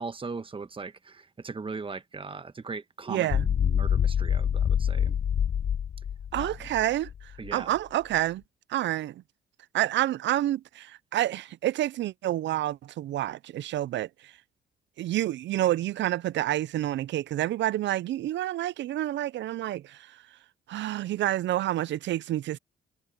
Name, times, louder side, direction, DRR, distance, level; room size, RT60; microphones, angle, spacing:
voice 1, 0.0-5.2 6.3-6.6 7.4-7.7, right 4 dB, 25° right, 1.3 m, -39 dB
voice 2, 3.1-3.5 6.3-7.1 7.5-8.4 8.7-9.2 9.7-14.3 15.0-20.2 20.7-22.6, right 14 dB, 65° right, 0.5 m, -28 dB
sound 1, 3.3-7.5, left 8 dB, 35° left, 0.4 m, -26 dB
cardioid pair, 90°, 20 cm